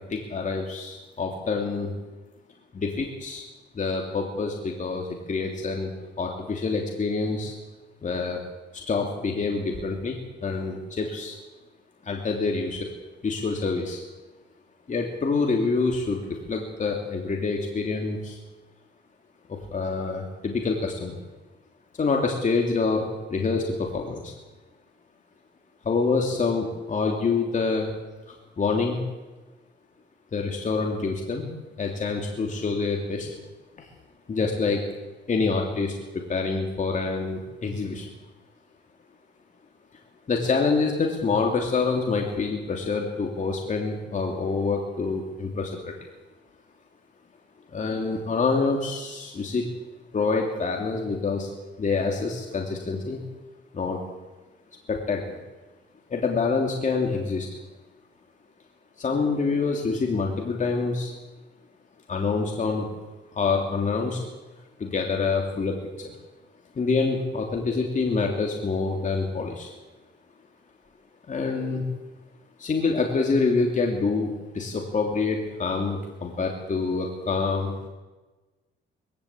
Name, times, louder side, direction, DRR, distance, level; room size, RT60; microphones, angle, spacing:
voice 1, 0.1-1.9 2.7-3.4 3.7-5.9 6.2-7.5 8.0-8.4 8.7-11.3 12.0-12.9 13.2-14.0 14.9-18.4 19.5-21.2 22.0-24.3 25.8-27.9 28.6-29.0 30.3-33.3 33.8-33.9 34.3-34.8 35.3-36.0 36.3-38.1 40.3-45.9 47.7-49.7 50.1-51.5 51.8-53.2 53.7-54.0 54.9-55.4 56.1-57.5 59.0-61.2 62.1-62.9 63.3-64.2 64.8-66.1 66.7-69.7 71.3-71.9 72.6-77.7, left 4 dB, 40° left, 1 dB, 3.1 m, -26 dB
21.0 x 16.0 x 8.6 m, 1.2 s
cardioid pair, 90°, 20 cm